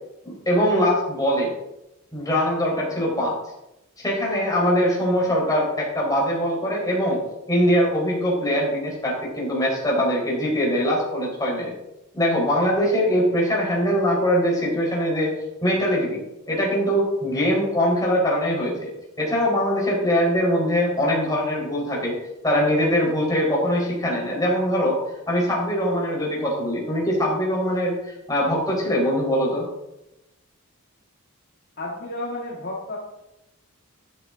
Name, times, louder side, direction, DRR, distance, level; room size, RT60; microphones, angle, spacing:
voice 1, 0.2-1.5 2.1-3.4 4.0-7.2 7.5-11.7 12.1-15.3 15.6-16.2 16.5-18.9 19.2-22.1 22.4-25.0 25.3-29.6, equal, 15° left, -4 dB, 4.8 m, -22 dB
voice 2, 31.8-33.0, left 1 dB, 45° left, -3 dB, 2.0 m, -31 dB
14.5 x 10.5 x 4.0 m, 0.91 s
head